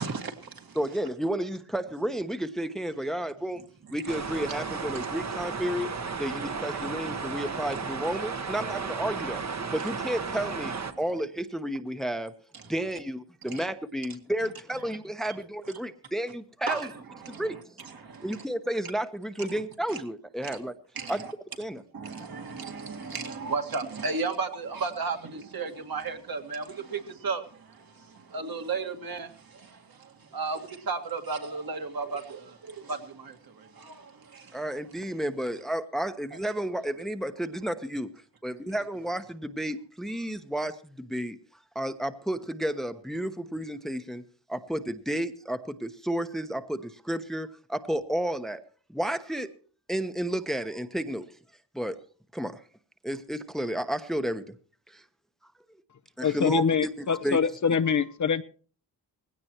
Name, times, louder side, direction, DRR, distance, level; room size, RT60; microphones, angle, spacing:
voice 1, 0.0-0.8 4.9-5.1 10.9-11.0 12.5-12.7 13.4-13.7 16.6-18.5 19.5-19.6 19.9-20.0 20.4-20.6 21.0-21.3 21.9-34.6, right 4 dB, 55° right, 2.2 m, -35 dB
voice 2, 0.8-3.6 3.9-5.9 6.2-9.4 9.7-12.3 12.7-16.9 17.3-17.6 18.2-20.7 21.1-21.2 21.6-21.8 34.5-38.1 38.4-41.4 41.7-44.2 44.5-48.6 48.9-49.5 49.9-51.3 51.7-52.0 52.3-52.6 53.0-54.5 54.9-55.0 56.2-57.4, right 1 dB, ahead, 1.0 m, -32 dB
sound 1, 4.1-10.9, right 5 dB, 40° right, 1.3 m, -34 dB
voice 3, 56.2-58.4, left 6 dB, 45° left, 0.8 m, -25 dB
19.0 x 16.5 x 3.1 m
cardioid pair, 80°, 43 cm